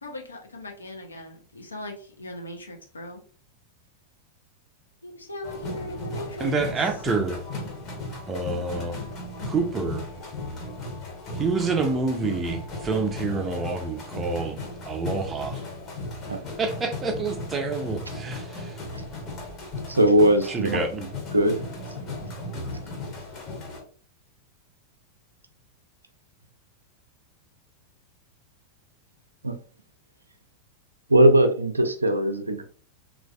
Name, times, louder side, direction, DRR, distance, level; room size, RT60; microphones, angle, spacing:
voice 1, 0.0-3.2 5.0-6.6, left 1 dB, 80° left, 0.6 m, -38 dB
sound 1, 5.4-23.8, left 2 dB, 35° left, 0.9 m, -36 dB
voice 2, 6.4-7.4 8.3-9.0 9.5-10.1 11.4-15.6 16.6-18.8 20.5-21.1, right 3 dB, 20° right, 0.5 m, -28 dB
voice 3, 19.9-20.8 21.3-21.6 29.4-29.5 31.1-32.6, right 1 dB, 80° right, 0.4 m, -19 dB
3.2 x 2.4 x 2.4 m
figure-of-eight pair, 90°, 0 cm